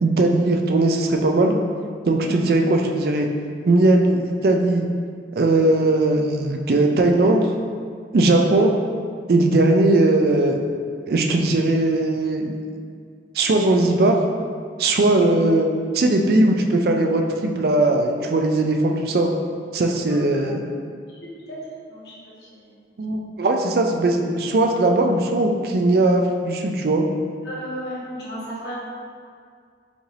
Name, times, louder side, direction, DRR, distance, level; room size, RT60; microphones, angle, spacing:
voice 1, 0.0-1.5 2.1-3.3 3.7-4.9 5.4-7.5 8.1-8.7 9.3-10.6 11.1-12.5 13.3-14.2 14.8-15.7 15.9-19.3 19.7-20.6 23.0-27.0, right 2 dB, 55° right, 3 dB, 0.4 m, -19 dB
voice 2, 21.2-21.6 21.9-22.8 27.4-28.7, equal, 70° left, -7 dB, 1.2 m, -35 dB
5.0 x 2.5 x 3.3 m, 2.2 s
head